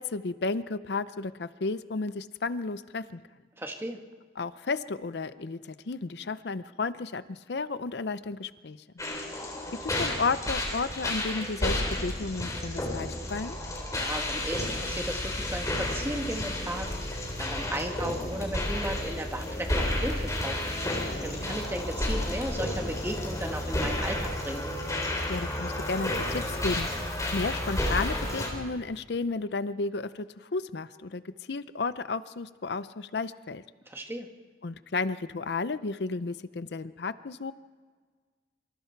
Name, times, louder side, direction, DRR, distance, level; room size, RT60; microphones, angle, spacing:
voice 1, 0.0-3.2 4.4-8.8 9.8-13.6 25.3-33.6 34.6-37.5, left 3 dB, 70° left, 14 dB, 0.6 m, -33 dB
voice 2, 3.6-4.0 13.9-24.6 33.9-34.3, right 1 dB, 15° right, 3 dB, 1.6 m, -36 dB
sound 1, 9.0-28.5, left 1 dB, 20° left, 3.8 m, -31 dB
26.5 x 25.5 x 4.6 m, 1.5 s
head